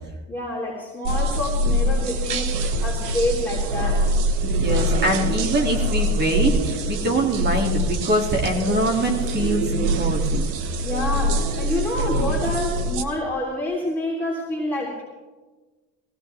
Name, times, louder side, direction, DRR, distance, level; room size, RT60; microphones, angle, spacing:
voice 1, 0.3-4.1 10.8-15.0, left 1 dB, 5° left, -7 dB, 3.5 m, -28 dB
sound 1, 1.0-13.0, equal, 75° right, 1.4 m, -24 dB
voice 2, 4.4-10.5, right 1 dB, 25° right, 2 dB, 2.6 m, -23 dB
20.0 x 16.5 x 3.5 m, 1.3 s
cardioid pair, 125°, 38 cm